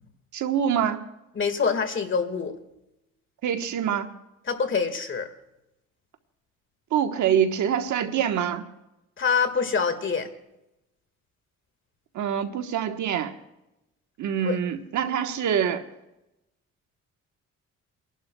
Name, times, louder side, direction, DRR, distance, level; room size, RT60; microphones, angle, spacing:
voice 1, 0.3-1.0 3.4-4.1 6.9-8.6 12.1-13.3 14.2-15.9, right 8 dB, 75° right, 7 dB, 1.2 m, -25 dB
voice 2, 1.3-2.6 4.5-5.3 9.2-10.3 14.4-14.6, left 5 dB, 40° left, 8 dB, 1.8 m, -25 dB
29.5 x 11.5 x 2.3 m, 0.92 s
cardioid pair, 90°, 30 cm